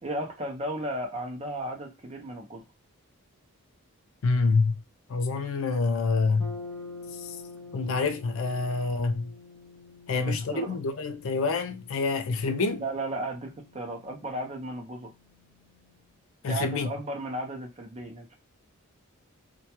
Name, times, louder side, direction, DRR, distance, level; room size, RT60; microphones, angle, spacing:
voice 1, 0.0-2.6 10.1-10.8 12.7-15.1 16.5-18.4, right 1 dB, 30° right, 0.5 m, -35 dB
voice 2, 4.2-4.8 5.1-6.6 7.2-7.4 7.7-9.3 10.1-12.8 16.4-16.9, left 4 dB, 70° left, 0.4 m, -27 dB
sound 1, 6.4-16.2, left 3 dB, 15° left, 0.6 m, -47 dB
2.2 x 2.1 x 2.8 m
head